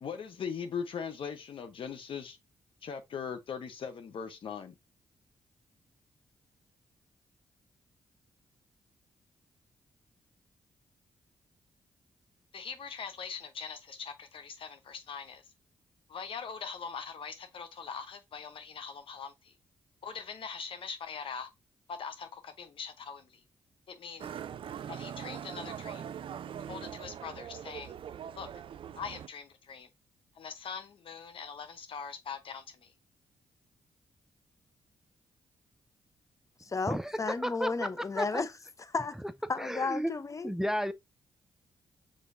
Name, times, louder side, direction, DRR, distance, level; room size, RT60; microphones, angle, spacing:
voice 1, 0.0-2.4 2.8-4.7 12.5-15.4 16.1-19.3 20.0-21.5 21.9-23.3 23.9-24.3 24.9-26.0 26.7-27.9 28.4-28.5 28.9-29.9 30.4-32.9, left 6 dB, 60° left, 0.9 m, -41 dB
Motorcycle, 24.2-29.3, right 9 dB, 60° right, 0.4 m, -42 dB
voice 2, 36.6-38.5 38.8-39.2 39.5-40.5, left 4 dB, 30° left, 0.7 m, -33 dB
voice 3, 37.4-37.9 38.2-38.4 39.6-40.1 40.4-40.9, equal, 5° right, 0.5 m, -32 dB
5.2 x 3.8 x 2.6 m
hypercardioid pair, 45°, 10 cm